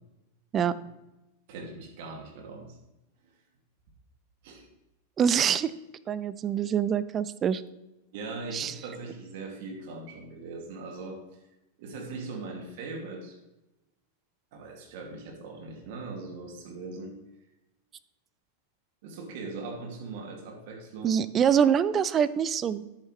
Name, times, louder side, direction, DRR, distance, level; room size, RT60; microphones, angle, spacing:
voice 1, 1.5-2.8 4.4-4.7 8.1-11.2 11.8-13.4 14.5-17.2 19.0-21.2, right 3 dB, 55° right, 2 dB, 2.5 m, -40 dB
voice 2, 5.2-5.7 6.1-7.6 8.5-8.7 21.0-22.8, right 8 dB, 30° right, 16 dB, 0.5 m, -25 dB
10.5 x 9.0 x 3.3 m, 0.98 s
figure-of-eight pair, 95°, 0 cm